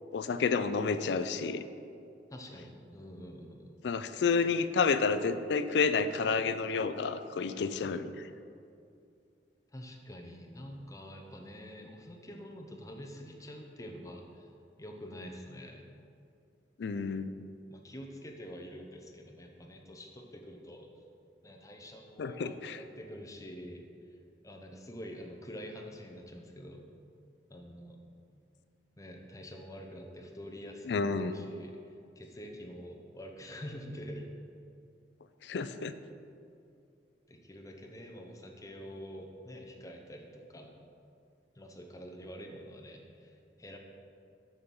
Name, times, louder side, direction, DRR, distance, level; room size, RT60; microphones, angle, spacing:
voice 1, 0.1-1.6 3.8-8.0 16.8-17.3 22.2-22.8 30.9-31.3 35.4-35.9, left 5 dB, 75° left, 11 dB, 0.4 m, -30 dB
voice 2, 2.3-3.8 7.6-7.9 9.7-14.5 14.8-15.8 17.7-20.9 21.4-23.8 24.4-26.9 27.5-28.0 29.0-31.8 32.2-34.2 37.3-40.7 41.5-43.8, equal, 20° left, 2 dB, 0.8 m, -46 dB
6.6 x 6.0 x 5.4 m, 2.5 s
head